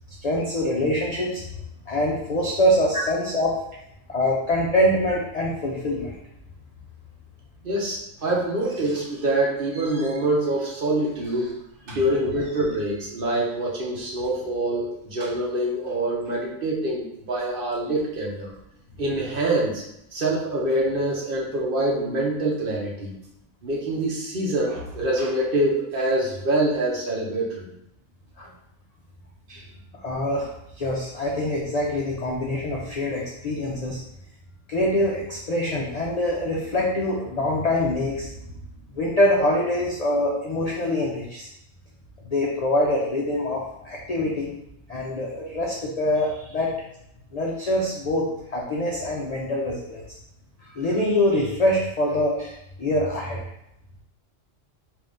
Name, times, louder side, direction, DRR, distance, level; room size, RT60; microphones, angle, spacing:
voice 1, 0.2-1.4 1.9-3.5 4.1-6.2 28.4-28.5 30.0-30.5 30.8-34.0 34.7-38.3 38.9-41.5 42.2-44.5 44.9-46.7 47.3-50.0 50.6-53.4, left 1 dB, 55° left, -3 dB, 0.4 m, -24 dB
voice 2, 7.6-11.5 11.9-18.5 19.0-19.8 20.1-23.1 23.6-27.7 29.5-29.7, right 1 dB, 50° right, -3 dB, 0.9 m, -25 dB
3.8 x 2.7 x 3.5 m, 0.82 s
omnidirectional pair, 1.3 m